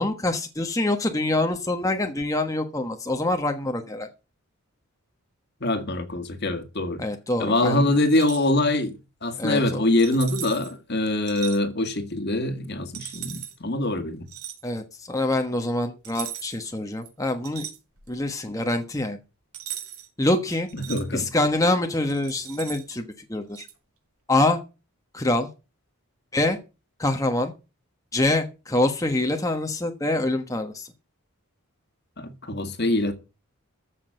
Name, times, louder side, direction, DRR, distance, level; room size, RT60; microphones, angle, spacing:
voice 1, 0.0-4.1 7.0-7.8 9.4-9.8 14.6-17.7 18.1-19.2 20.2-20.7 21.1-23.7 24.3-24.6 25.1-25.5 26.3-26.6 27.0-27.5 28.1-30.9, left 2 dB, 15° left, 1.3 m, -25 dB
voice 2, 5.6-7.0 7.4-9.0 9.2-14.2 20.7-21.3 32.2-33.1, left 1 dB, 50° left, 1.9 m, -24 dB
sound 1, 8.1-8.5 10.0-10.7 11.3-11.6 12.9-13.6 14.3-14.6 16.0-16.7 17.0-18.2 19.5-20.1 20.5-21.0 22.1-23.0 23.6-23.7, right 11 dB, 80° right, 4.1 m, -38 dB
14.0 x 6.4 x 7.8 m
head